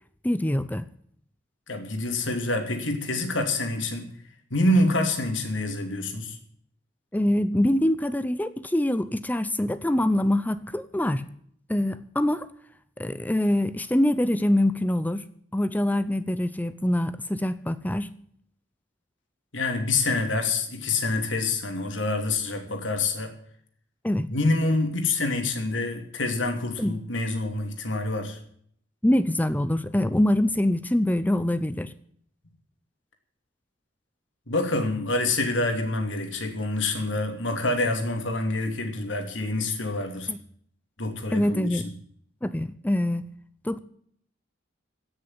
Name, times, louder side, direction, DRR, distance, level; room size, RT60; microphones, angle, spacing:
voice 1, 0.2-0.9 7.1-11.2 11.7-12.5 13.0-15.2 15.5-18.1 24.0-24.3 26.8-27.0 29.0-31.9 40.3-40.4 41.3-41.9 42.4-43.3 43.6-43.8, left 1 dB, 10° left, 0.5 m, -24 dB
voice 2, 1.7-4.1 4.5-6.4 19.5-23.3 24.3-28.4 34.5-40.3 41.0-41.8, left 2 dB, 85° left, 2.8 m, -26 dB
16.5 x 6.8 x 9.6 m
head